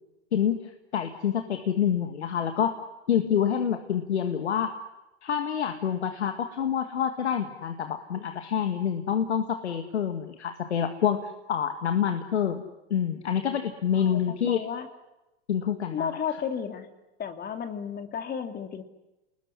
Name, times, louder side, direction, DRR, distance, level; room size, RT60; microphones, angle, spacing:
voice 1, 0.3-2.8 3.1-4.8 5.2-12.6 12.9-14.7 15.5-16.1, left 8 dB, 90° left, 7 dB, 1.8 m, -27 dB
voice 2, 13.9-14.9 15.9-16.9 17.2-18.8, left 7 dB, 30° left, 7 dB, 2.9 m, -33 dB
27.5 x 20.5 x 9.9 m, 1.0 s
hypercardioid pair, 105°, 32 cm